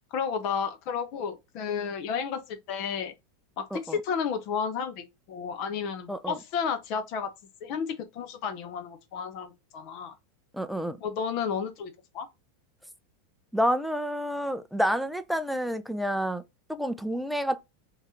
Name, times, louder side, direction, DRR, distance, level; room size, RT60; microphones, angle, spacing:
voice 1, 0.1-3.1 3.6-7.3 7.6-7.9 8.1-10.1 11.0-12.3, left 6 dB, 55° left, 0.9 m, -32 dB
voice 2, 10.5-11.0 13.5-16.4 16.7-17.6, equal, ahead, 0.5 m, -29 dB
3.2 x 2.7 x 3.6 m
hypercardioid pair, 95°, 0 cm